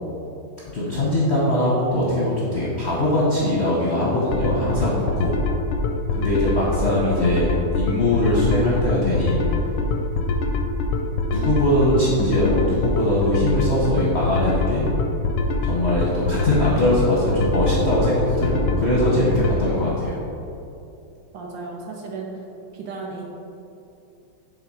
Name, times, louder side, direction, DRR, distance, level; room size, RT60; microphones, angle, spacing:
voice 1, 0.7-5.3 6.1-9.4 11.3-14.9 15.6-20.2, left 1 dB, 55° left, -7 dB, 0.7 m, -21 dB
sound 1, 4.3-19.6, left 2 dB, 85° left, 1.5 m, -24 dB
voice 2, 21.3-22.3 22.7-23.2, right 4 dB, 70° right, 0 dB, 1.2 m, -34 dB
6.4 x 3.5 x 4.8 m, 2.7 s
omnidirectional pair, 2.4 m